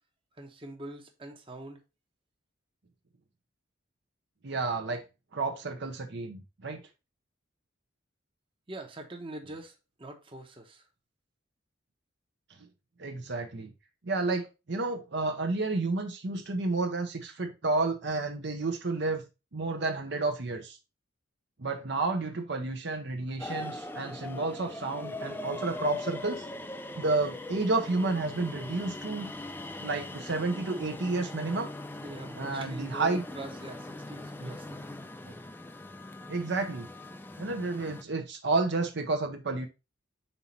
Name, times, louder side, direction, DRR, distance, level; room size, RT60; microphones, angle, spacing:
voice 1, 0.4-1.8 8.7-9.7 10.0-10.8 32.0-34.8, right 1 dB, 25° right, 1.0 m, -43 dB
voice 2, 4.4-5.0 5.3-6.8 13.0-13.7 14.0-19.2 19.5-20.8 21.6-26.4 27.0-29.3 29.8-31.7 32.3-33.2 34.4-34.5 36.3-36.9 37.4-39.7, right 3 dB, 60° right, 0.9 m, -31 dB
sound 1, 23.4-38.0, left 2 dB, 10° left, 0.4 m, -41 dB
5.6 x 4.2 x 4.2 m
head